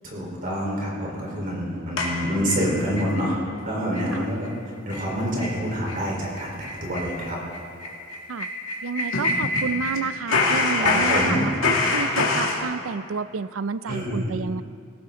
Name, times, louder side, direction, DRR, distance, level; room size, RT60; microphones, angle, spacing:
voice 1, 0.0-4.5 4.9-7.4 10.7-11.4 13.9-14.2, equal, 40° right, -3 dB, 4.1 m, -27 dB
sound 1, 2.0-3.1 3.5-3.6 3.9-4.2 4.4-4.5 4.9-5.1 5.4-5.6 5.9-6.0 6.3-10.0 10.3-12.6, left 3 dB, 80° left, 2.2 m, -25 dB
voice 2, 8.8-14.6, right 5 dB, 85° right, 15 dB, 0.5 m, -30 dB
20.5 x 17.0 x 3.8 m, 2.3 s
head